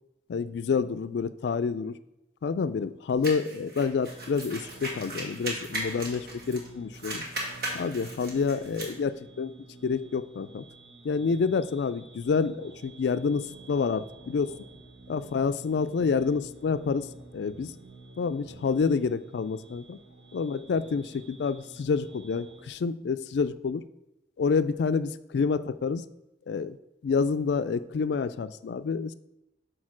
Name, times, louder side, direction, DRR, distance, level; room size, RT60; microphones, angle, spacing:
voice 1, 0.3-1.9 2.4-7.2 7.7-9.5 9.8-10.7 11.0-14.5 15.1-17.7 18.2-20.0 20.3-23.8 24.4-26.0 26.5-26.8 27.0-29.1, left 5 dB, 70° left, 14 dB, 0.3 m, -28 dB
sound 1, 3.2-6.7 6.9-8.9, right 1 dB, 55° right, 1.9 m, -37 dB
sound 2, 4.1-22.7, right 2 dB, 90° right, 1.3 m, -50 dB
6.4 x 4.5 x 6.0 m, 0.92 s
head